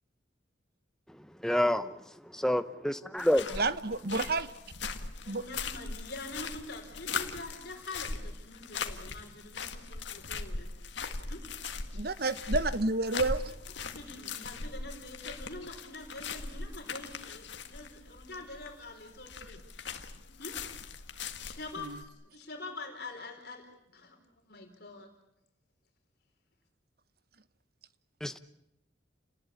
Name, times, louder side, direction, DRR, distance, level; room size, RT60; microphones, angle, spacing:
voice 1, 1.4-1.9 2.3-3.5 28.2-28.4, left 1 dB, 5° left, 10 dB, 0.9 m, -28 dB
sound 1, 3.2-22.0, left 4 dB, 70° left, 1.9 m, -40 dB
voice 2, 3.5-4.5 5.3-5.4 11.9-13.4 21.8-22.0, right 3 dB, 55° right, 14 dB, 1.1 m, -30 dB
voice 3, 5.2-10.7 11.3-11.5 13.8-19.6 20.2-20.6 21.4-23.7 23.9-25.1, left 2 dB, 55° left, 2 dB, 4.4 m, -45 dB
30.0 x 19.5 x 8.5 m, 0.85 s
head